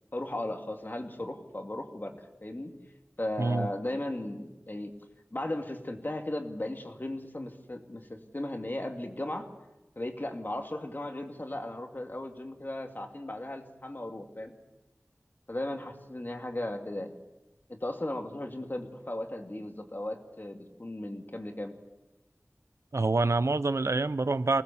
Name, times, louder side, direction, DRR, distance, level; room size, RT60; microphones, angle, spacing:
voice 1, 0.1-2.8 3.2-4.9 5.3-9.5 10.0-14.6 15.5-17.2 17.7-21.8, left 1 dB, 45° left, 2.6 m, -36 dB
voice 2, 22.9-24.6, right 3 dB, 80° right, 0.7 m, -26 dB
24.5 x 19.5 x 7.2 m
wide cardioid pair, 45°, 5 cm